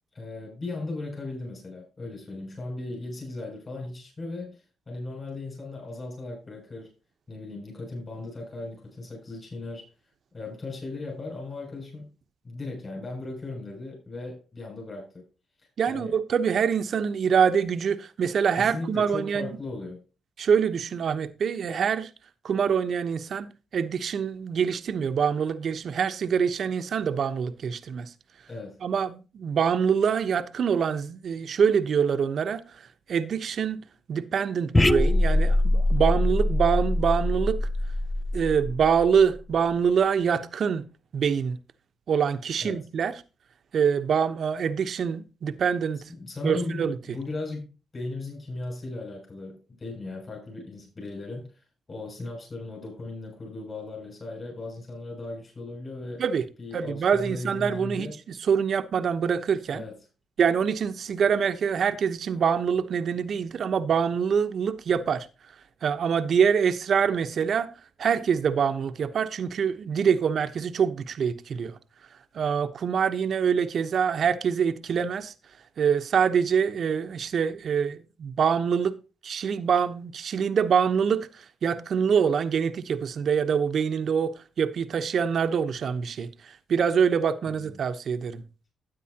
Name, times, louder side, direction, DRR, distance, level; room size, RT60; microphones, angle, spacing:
voice 1, 0.1-6.9 7.3-9.8 10.3-12.1 12.4-15.2 15.9-16.1 18.6-20.0 28.5-28.8 42.6-42.8 46.1-51.6 51.9-56.2 56.6-58.1 59.7-60.0 87.5-87.8, left 2 dB, 35° left, 7.2 m, -37 dB
voice 2, 15.8-19.5 20.4-22.1 22.4-28.1 28.8-33.8 34.1-37.7 38.3-40.8 41.1-41.6 42.1-43.2 43.7-46.1 46.4-47.0 56.2-56.4 56.7-59.8 60.4-65.3 65.8-67.7 68.0-71.7 72.3-75.3 75.8-79.0 79.2-88.4, right 7 dB, 60° right, 1.0 m, -25 dB
sound 1, 34.7-39.4, left 1 dB, 15° left, 0.5 m, -24 dB
12.5 x 9.3 x 2.9 m
cardioid pair, 75°, 0 cm